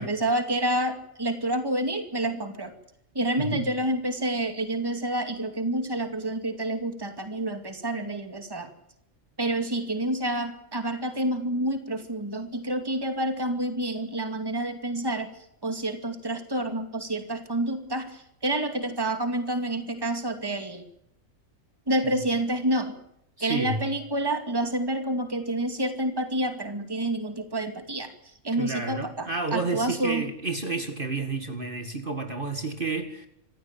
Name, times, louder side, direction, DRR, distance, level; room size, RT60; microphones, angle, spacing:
voice 1, 0.0-2.7 3.1-8.7 9.4-15.3 15.6-20.8 21.9-23.0 23.4-28.1 28.4-30.3, right 1 dB, 15° right, 7 dB, 2.3 m, -28 dB
voice 2, 23.4-23.8 28.6-33.3, right 3 dB, 40° right, 6 dB, 2.2 m, -30 dB
26.5 x 15.5 x 8.9 m, 0.76 s
omnidirectional pair, 1.4 m